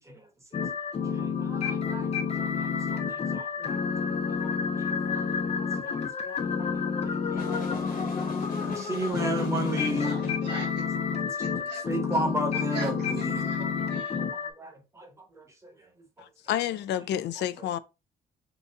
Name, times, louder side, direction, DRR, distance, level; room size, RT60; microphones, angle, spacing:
sound 1, 0.5-14.5, left 6 dB, 35° left, 0.6 m, -30 dB
voice 1, 1.0-2.1 2.4-3.8 4.4-10.3 11.5-13.5 14.4-15.7, right 1 dB, 15° right, 1.1 m, -35 dB
sound 2, 7.4-10.5, left 5 dB, 55° left, 1.2 m, -39 dB
voice 2, 10.0-10.8 11.4-11.8 12.7-14.2, right 5 dB, 80° right, 1.4 m, -42 dB
voice 3, 16.2-17.8, left 11 dB, 80° left, 0.4 m, -30 dB
3.9 x 2.3 x 4.0 m
cardioid pair, 150°, 17 cm